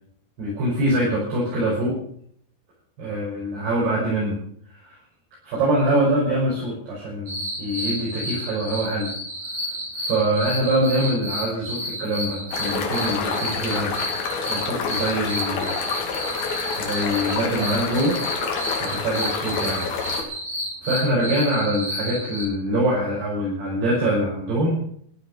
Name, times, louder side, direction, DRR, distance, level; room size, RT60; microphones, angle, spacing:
voice 1, 0.4-2.0 3.0-4.4 4.7-4.9 5.4-9.1 10.0-14.0 14.5-15.7 16.8-18.2 18.8-19.9 20.8-24.8, right 1 dB, 70° right, -6 dB, 7.5 m, -24 dB
sound 1, 7.3-22.5, equal, 45° right, 8.8 m, -31 dB
sound 2, 12.5-20.2, left 5 dB, 65° left, 3.9 m, -28 dB
15.0 x 12.5 x 6.6 m, 0.63 s
omnidirectional pair, 4.9 m